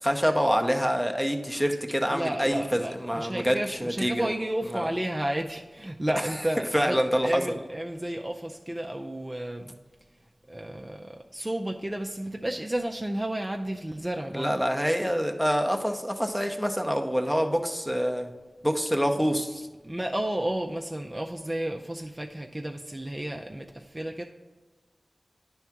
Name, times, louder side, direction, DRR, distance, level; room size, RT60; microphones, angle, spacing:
voice 1, 0.0-4.3 4.7-4.9 6.2-6.3 6.7-7.4 14.3-18.3 18.6-19.7, equal, 5° left, 4 dB, 0.7 m, -26 dB
voice 2, 2.1-7.0 7.2-9.8 10.5-14.5 19.8-24.2, right 1 dB, 20° right, 2 dB, 0.4 m, -32 dB
9.8 x 3.6 x 5.8 m, 1.3 s
wide cardioid pair, 60°, 0 cm